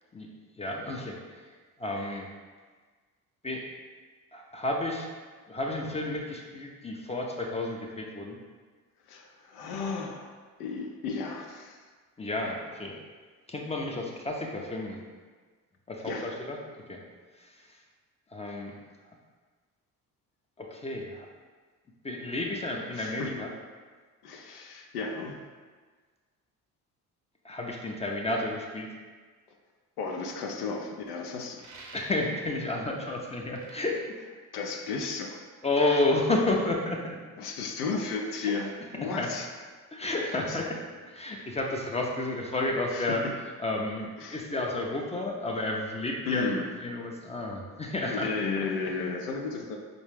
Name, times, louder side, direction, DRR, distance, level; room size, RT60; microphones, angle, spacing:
voice 1, 0.6-1.4 1.8-2.3 3.4-3.7 4.3-5.1 5.5-8.4 12.2-13.0 13.5-15.0 15.9-16.6 16.9-17.0 17.4-17.8 18.3-18.7 20.6-21.3 22.0-23.5 27.4-28.9 31.9-34.0 35.6-37.0 38.4-38.5 39.0-39.3 39.9-40.8 41.0-43.2 43.6-48.3, left 2 dB, 15° left, 0 dB, 0.5 m, -31 dB
voice 2, 9.1-10.3 10.6-11.8 16.1-16.3 22.9-23.3 24.2-25.4 30.0-31.7 34.5-35.4 37.4-39.5 40.3-40.6 42.9-43.3 44.2-44.5 46.3-46.7 48.1-49.8, left 4 dB, 80° left, 2 dB, 0.5 m, -34 dB
sound 1, 31.6-32.4 33.5-33.8, right 3 dB, 40° right, 0.7 m, -48 dB
4.8 x 2.2 x 3.2 m, 1.5 s
hypercardioid pair, 50°, 45 cm